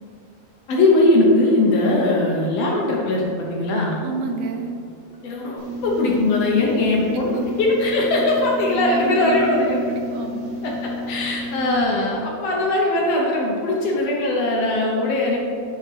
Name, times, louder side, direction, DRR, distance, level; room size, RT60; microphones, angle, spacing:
voice 1, 0.7-4.0 5.2-9.8 10.6-15.4, left 2 dB, 70° left, -2 dB, 1.6 m, -20 dB
voice 2, 4.0-4.8 6.5-6.8 7.1-7.5 8.7-10.6, right 3 dB, 85° right, 4 dB, 2.1 m, -29 dB
sound 1, 5.6-11.8, left 1 dB, 45° right, 0.9 m, -31 dB
10.5 x 4.7 x 3.2 m, 2.6 s
omnidirectional pair, 3.5 m